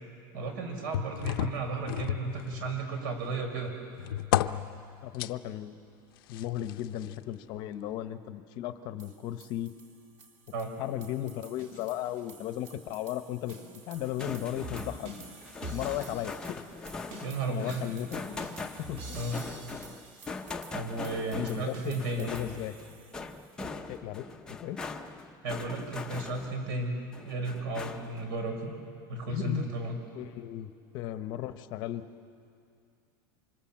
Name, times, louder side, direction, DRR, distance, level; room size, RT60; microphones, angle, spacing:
voice 1, 0.3-3.7 10.5-10.7 17.2-17.8 19.1-19.5 20.7-22.3 25.4-27.0 27.2-28.8 29.1-30.0, right 3 dB, 70° right, 4 dB, 5.7 m, -34 dB
sound 1, 0.9-2.9 3.3-5.3 6.3-7.2 7.9-8.0, left 13 dB, 80° left, 0.7 m, -33 dB
voice 2, 5.0-5.8 6.3-9.7 10.8-13.5 13.9-15.2 15.7-16.3 17.5-18.4 18.9-19.0 21.3-22.7 23.9-24.8 29.3-29.7 30.1-32.0, left 12 dB, 40° left, 10 dB, 0.9 m, -35 dB
sound 2, 9.0-23.5, right 2 dB, 40° right, 2.5 m, -48 dB
sound 3, 14.0-26.7 27.1-28.3, left 4 dB, 5° left, 0.7 m, -41 dB
27.5 x 25.5 x 7.5 m, 2.4 s
supercardioid pair, 175°, 12 cm